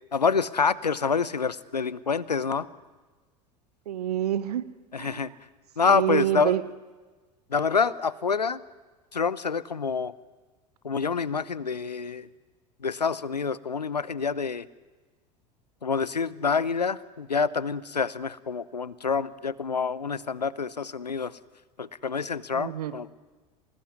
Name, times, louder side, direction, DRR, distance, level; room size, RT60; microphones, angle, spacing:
voice 1, 0.1-2.7 4.9-5.3 5.8-6.6 7.5-8.6 9.1-10.1 10.8-12.3 12.8-14.7 15.8-21.4 21.8-23.1, left 5 dB, 85° left, 0.8 m, -27 dB
voice 2, 3.9-5.3 5.8-6.6 22.5-22.9, right 11 dB, 70° right, 1.3 m, -28 dB
26.5 x 19.0 x 9.7 m
figure-of-eight pair, 75°, 20 cm